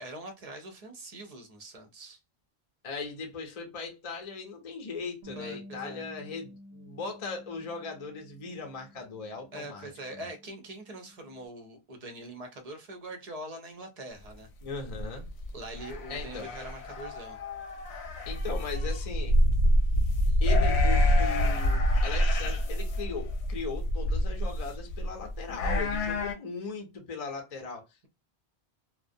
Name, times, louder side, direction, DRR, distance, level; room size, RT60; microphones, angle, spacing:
voice 1, 0.0-2.2 5.4-6.1 9.5-14.5 15.5-17.4, right 1 dB, 45° right, 0.6 m, -43 dB
voice 2, 2.8-10.3 14.6-15.2 16.1-16.5 18.3-19.4 20.4-27.8, left 4 dB, 40° left, 0.7 m, -38 dB
Bass guitar, 5.2-11.5, left 1 dB, 75° right, 0.8 m, -51 dB
sound 1, 14.7-26.3, equal, 80° left, 0.8 m, -27 dB
2.4 x 2.1 x 2.5 m
omnidirectional pair, 1.1 m